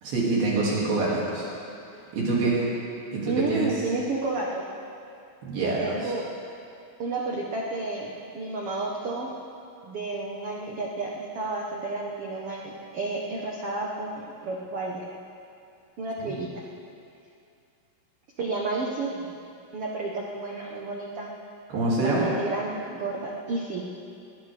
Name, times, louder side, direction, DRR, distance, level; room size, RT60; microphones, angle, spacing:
voice 1, 0.0-1.5 2.1-2.6 3.1-3.8 5.4-6.1 16.2-16.3 21.7-22.3, right 3 dB, 70° right, -6 dB, 4.4 m, -26 dB
voice 2, 3.3-4.7 5.6-6.2 7.0-9.3 9.8-15.0 16.0-16.5 18.4-19.3 19.7-21.3 22.0-23.9, right 3 dB, 90° right, -2 dB, 1.2 m, -31 dB
20.5 x 20.0 x 3.5 m, 2.5 s
omnidirectional pair, 4.6 m